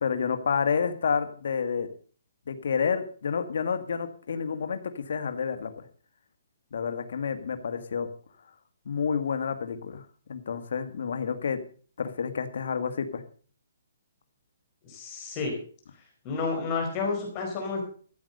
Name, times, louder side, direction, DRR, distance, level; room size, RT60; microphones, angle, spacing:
voice 1, 0.0-1.9 2.5-5.7 6.7-8.1 8.9-10.0 10.3-11.6 12.0-13.2, left 6 dB, 65° left, 8 dB, 1.7 m, -29 dB
voice 2, 14.8-15.5 16.2-17.8, left 4 dB, 25° left, 0 dB, 4.6 m, -30 dB
14.0 x 8.0 x 6.8 m, 0.43 s
hypercardioid pair, 155°, 0 cm